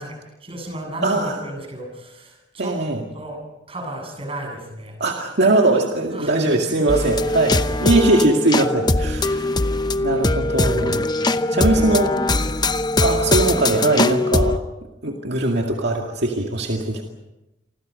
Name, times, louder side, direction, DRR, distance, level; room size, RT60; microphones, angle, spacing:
voice 1, 0.0-2.8 3.1-3.4 3.7-5.0 6.1-7.4 11.3-12.5, right 1 dB, 30° right, 2 dB, 7.8 m, -34 dB
voice 2, 1.0-1.4 2.6-3.0 5.0-9.6 10.0-11.1 11.5-12.1 13.0-14.5 15.0-17.0, right 2 dB, 60° right, 1 dB, 2.2 m, -20 dB
sound 1, 6.9-14.6, left 2 dB, 20° left, 0.8 m, -21 dB
28.5 x 25.0 x 5.4 m, 0.96 s
head